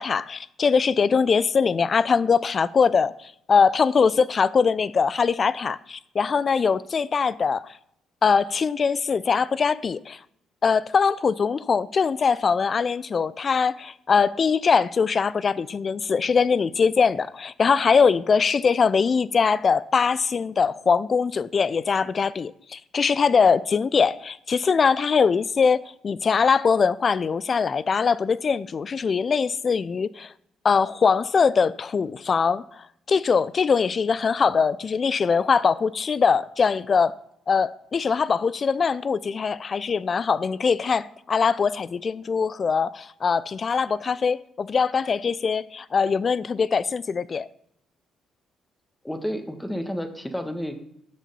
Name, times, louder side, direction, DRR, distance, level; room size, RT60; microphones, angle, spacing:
voice 1, 0.0-7.8 8.2-10.2 10.6-30.3 30.6-37.1 37.5-47.5, left 5 dB, 40° left, 0.5 m, -22 dB
voice 2, 49.0-50.8, equal, 10° left, 1.6 m, -31 dB
12.0 x 7.4 x 5.5 m
hypercardioid pair, 45°, 0 cm